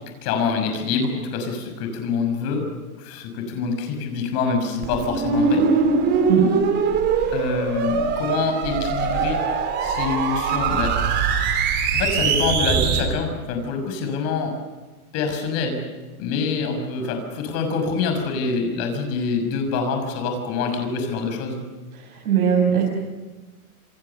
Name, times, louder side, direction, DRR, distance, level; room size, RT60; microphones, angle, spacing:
voice 1, 0.2-2.7 3.0-5.6 7.3-9.4 9.8-10.9 11.9-14.5 15.1-15.8 16.2-21.6, left 5 dB, 35° left, 5 dB, 6.1 m, -25 dB
sound 1, 4.8-13.0, right 5 dB, 25° right, 3.5 m, -22 dB
voice 2, 22.2-22.8, right 8 dB, 75° right, -1 dB, 6.8 m, -18 dB
27.5 x 26.5 x 7.1 m, 1.3 s
supercardioid pair, 160°, 44 cm